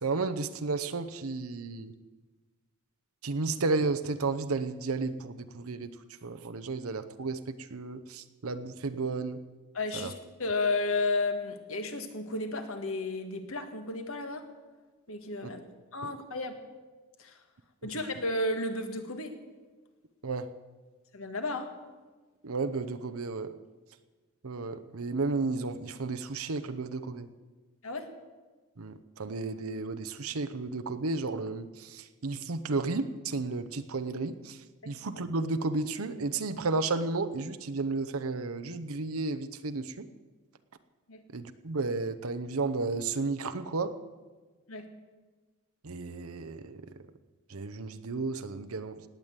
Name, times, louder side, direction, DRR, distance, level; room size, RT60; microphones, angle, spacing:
voice 1, 0.0-1.9 3.2-5.9 6.2-9.4 9.9-10.1 15.4-15.5 16.0-16.2 17.8-17.9 20.2-20.5 22.4-23.5 24.4-27.3 28.8-34.6 34.9-40.1 41.3-44.0 45.8-46.8 47.5-49.0, right 3 dB, 80° right, 9 dB, 0.8 m, -33 dB
voice 2, 9.7-10.1 10.4-14.4 15.1-15.6 15.9-16.5 17.2-17.3 17.8-19.4 21.1-21.7 27.8-28.1 34.8-34.9 41.1-41.2 44.7-44.9, left 2 dB, 70° left, 6 dB, 1.8 m, -32 dB
18.0 x 9.1 x 8.1 m, 1.3 s
head